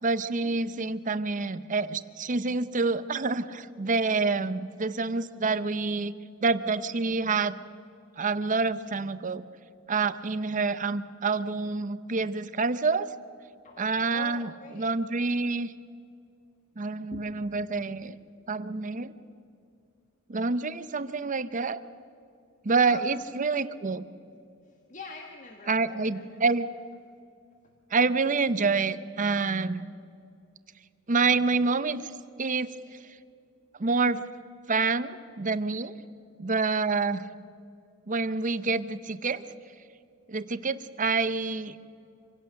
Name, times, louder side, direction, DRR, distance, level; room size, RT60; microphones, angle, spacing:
voice 1, 0.0-6.1 6.4-7.6 8.2-9.4 9.9-13.1 13.8-15.7 16.8-18.2 18.5-19.1 20.3-21.8 22.6-24.0 25.7-26.7 27.9-29.9 31.1-32.1 32.4-32.8 33.8-34.2 34.7-36.0 36.4-37.3 38.1-39.4 40.3-41.8, right 4 dB, 40° right, 14 dB, 0.7 m, -27 dB
voice 2, 14.1-14.9 17.0-17.3 22.9-23.0 24.7-26.4, left 3 dB, 40° left, 3 dB, 1.5 m, -44 dB
26.0 x 17.0 x 6.5 m, 2.5 s
head